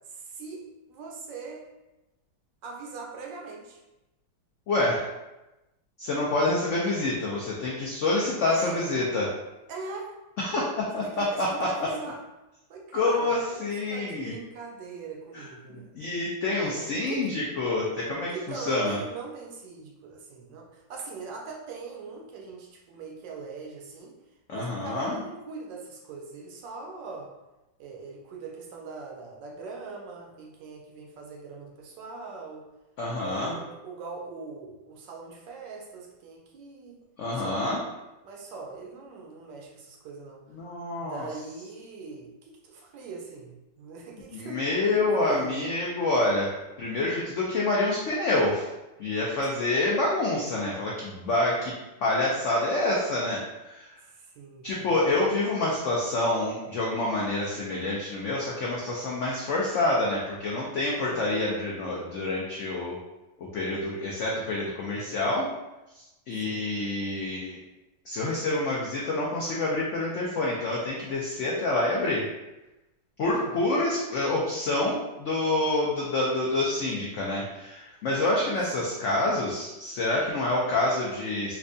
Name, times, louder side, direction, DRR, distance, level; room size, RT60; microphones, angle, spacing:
voice 1, 0.1-1.7 2.6-3.8 8.5-8.8 9.7-10.2 11.0-12.2 12.7-15.9 16.7-17.2 18.3-24.1 24.5-27.3 27.8-32.7 33.2-37.0 37.4-37.7 38.2-40.5 41.0-44.6 45.0-45.7 54.1-54.9 61.0-61.4 66.3-66.7 73.3-73.6 78.8-78.9, right 4 dB, 85° right, 0 dB, 1.3 m, -41 dB
voice 2, 4.7-5.0 6.0-9.3 10.4-11.7 12.9-14.3 15.3-15.4 15.9-19.0 24.5-25.2 33.0-33.6 37.2-37.8 40.5-41.3 44.3-46.5 46.8-48.7 49.0-51.7 52.0-54.0 54.6-63.0 63.4-65.5 65.9-67.6 68.0-72.3 73.2-81.6, left 2 dB, 85° left, -4 dB, 0.6 m, -27 dB
4.4 x 2.2 x 2.6 m, 1.0 s
omnidirectional pair, 1.9 m